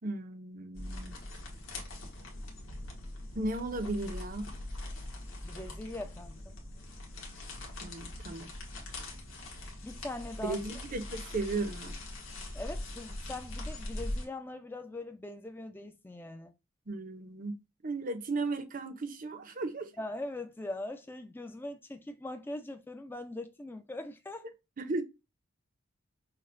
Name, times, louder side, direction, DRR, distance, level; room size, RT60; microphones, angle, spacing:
voice 1, 0.0-1.2 3.4-4.5 7.8-8.5 10.4-11.9 16.9-19.9 24.8-25.0, right 2 dB, 40° right, 0.5 m, -35 dB
sound 1, 0.7-14.3, left 1 dB, 65° left, 1.2 m, -42 dB
voice 2, 5.4-6.6 9.8-10.6 12.5-16.5 20.0-24.5, left 2 dB, 10° left, 0.3 m, -41 dB
5.8 x 2.1 x 2.4 m
head